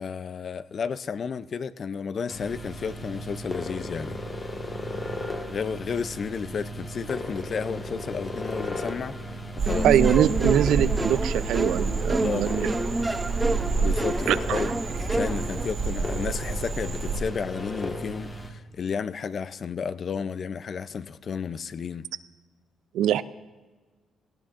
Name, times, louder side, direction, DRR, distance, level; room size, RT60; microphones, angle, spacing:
voice 1, 0.0-4.2 5.5-9.2 9.6-9.9 12.2-12.5 13.8-22.1, left 6 dB, 50° left, 0.5 m, -32 dB
sound 1, 2.3-18.5, equal, 30° left, 1.6 m, -36 dB
Frog, 9.6-17.2, right 4 dB, 60° right, 2.0 m, -29 dB
sound 2, 9.7-15.7, right 2 dB, 15° right, 0.5 m, -29 dB
voice 2, 9.8-12.7 14.3-14.6 22.9-23.2, right 11 dB, 80° right, 0.4 m, -23 dB
18.0 x 17.0 x 2.6 m
cardioid pair, 90°, 0 cm